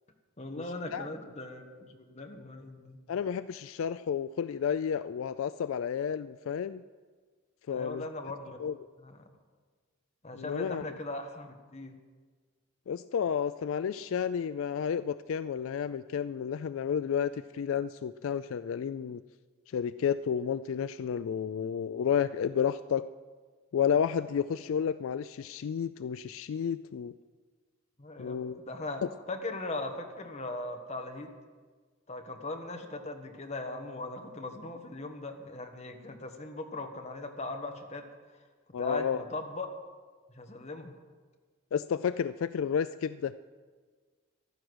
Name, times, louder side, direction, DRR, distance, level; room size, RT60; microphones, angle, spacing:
voice 1, 0.4-3.0 7.7-8.6 9.0-9.2 10.2-12.0 28.0-29.0 29.3-31.3 32.1-38.0 38.8-39.7 40.3-40.9, left 2 dB, 30° left, 4 dB, 1.4 m, -39 dB
voice 2, 3.1-6.8 7.7-8.1 8.6-8.8 10.3-10.8 12.9-19.2 19.7-23.1 23.7-27.1 28.2-28.6 38.7-39.2 41.7-43.3, left 7 dB, 70° left, 14 dB, 0.3 m, -31 dB
14.5 x 11.5 x 6.2 m, 1.5 s
head